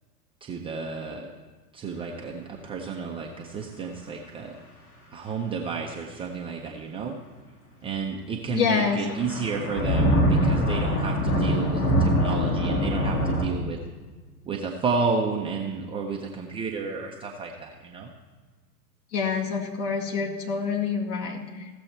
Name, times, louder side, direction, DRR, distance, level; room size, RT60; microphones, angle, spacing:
voice 1, 0.4-1.3 1.7-4.6 5.1-7.2 7.8-13.8 14.5-18.1, right 5 dB, 10° right, 0 dB, 0.5 m, -31 dB
voice 2, 8.5-9.0 19.1-21.7, left 6 dB, 45° left, 0 dB, 2.2 m, -27 dB
sound 1, 8.9-13.5, equal, 65° left, 2.8 m, -23 dB
16.0 x 6.9 x 4.4 m, 1.4 s
hypercardioid pair, 105°, 49 cm